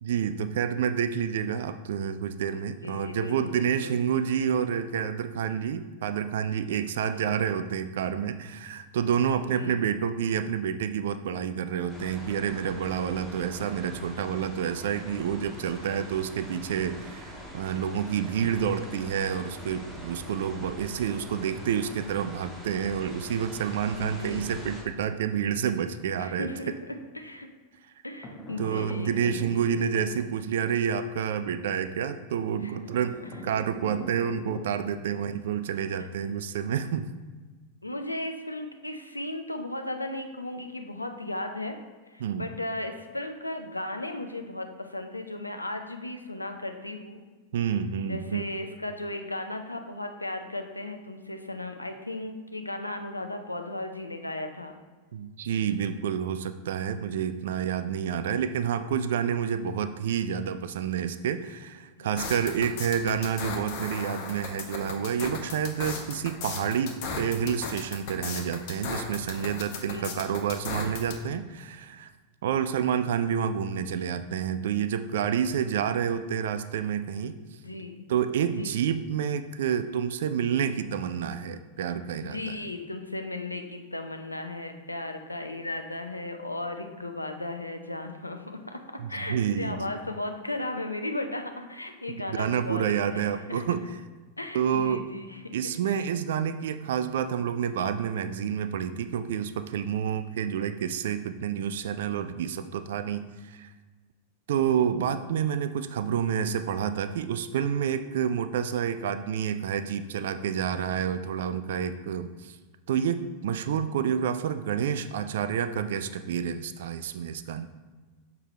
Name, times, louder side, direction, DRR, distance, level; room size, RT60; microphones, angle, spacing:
voice 1, 0.0-26.5 28.6-37.1 42.2-42.5 47.5-48.4 55.1-72.1 72.4-77.3 78.1-82.4 89.0-89.8 92.3-93.9 94.5-95.0 95.5-103.7 104.5-112.6 112.9-117.7, right 8 dB, 60° right, 11 dB, 0.3 m, -29 dB
voice 2, 2.8-4.0 7.1-7.3 9.2-9.8 23.9-24.5 26.2-27.5 28.0-29.9 32.6-32.8 37.8-41.8 42.1-47.2 48.1-54.8 58.3-58.6 62.0-62.2 69.8-70.1 77.6-78.0 78.5-78.8 82.2-93.6 94.4-95.6 95.9-96.1, left 2 dB, 85° left, 6 dB, 0.5 m, -36 dB
sound 1, 11.9-24.8, equal, ahead, 1.9 m, -44 dB
sound 2, 28.2-30.8 32.9-35.1, equal, 25° left, 1.2 m, -43 dB
sound 3, 62.2-71.1, left 5 dB, 45° left, 0.8 m, -36 dB
6.5 x 4.6 x 3.2 m, 1.3 s
figure-of-eight pair, 90°, 0 cm